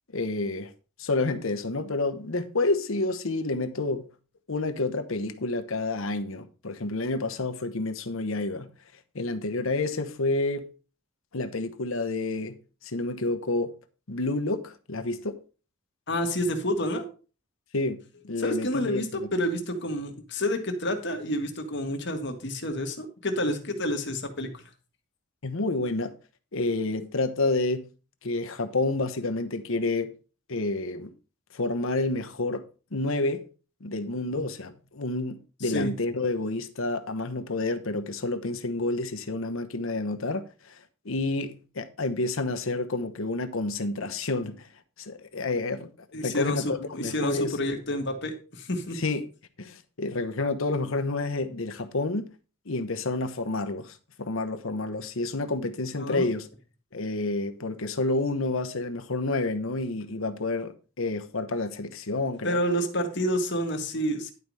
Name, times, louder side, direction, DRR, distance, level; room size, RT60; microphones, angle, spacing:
voice 1, 0.1-0.7 1.0-4.1 4.5-8.7 9.1-10.7 11.3-13.7 14.1-15.4 17.7-19.3 25.4-26.2 26.5-27.9 28.2-30.1 30.5-31.1 31.5-32.6 32.9-33.5 33.8-40.8 41.0-44.7 45.0-45.9 46.2-47.6 49.0-49.2 49.6-52.3 52.7-56.5 56.9-62.6, left 2 dB, 70° left, 1.0 m, -29 dB
voice 2, 16.1-17.0 18.4-24.6 34.3-34.4 35.6-35.9 46.1-49.0 55.9-56.3 62.4-64.3, equal, 55° left, 1.8 m, -29 dB
11.0 x 4.8 x 5.4 m
head